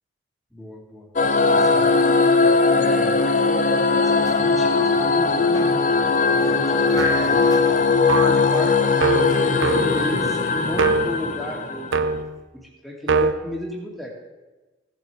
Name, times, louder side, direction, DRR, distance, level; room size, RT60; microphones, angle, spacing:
voice 1, 0.5-1.1 1.5-6.0 6.3-7.4 8.2-8.9 9.4-12.2 12.5-14.1, equal, ahead, -2 dB, 2.3 m, -34 dB
sound 1, 1.2-12.1, left 4 dB, 40° left, 0.7 m, -19 dB
sound 2, 4.1-10.1, left 1 dB, 20° left, 1.1 m, -39 dB
sound 3, 7.0-7.4 8.1-8.5 9.0-10.2 10.7-11.2 11.9-12.4 13.1-13.3, right 4 dB, 75° right, 0.7 m, -23 dB
16.5 x 7.7 x 5.0 m, 1.2 s
head